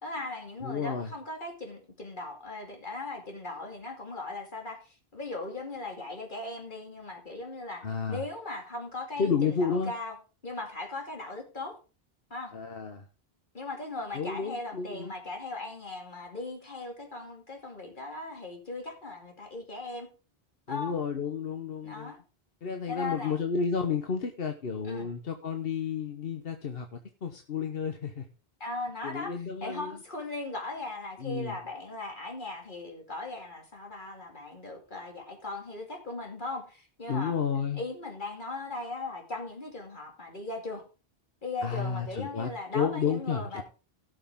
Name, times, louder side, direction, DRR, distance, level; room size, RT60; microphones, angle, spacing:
voice 1, 0.0-10.2 10.4-11.8 12.3-12.5 13.5-20.1 20.7-20.9 21.8-22.2 22.9-23.4 24.8-25.1 28.6-29.3 29.6-37.4 37.7-40.8 41.4-43.6, left 2 dB, 50° left, 2.8 m, -38 dB
voice 2, 0.6-1.1 7.8-8.2 9.2-9.9 12.5-13.0 14.1-15.1 20.7-22.1 22.6-28.2 29.0-30.0 31.2-31.6 37.1-37.8 41.6-43.6, left 6 dB, 70° left, 1.2 m, -31 dB
17.0 x 6.5 x 3.7 m
omnidirectional pair, 1.0 m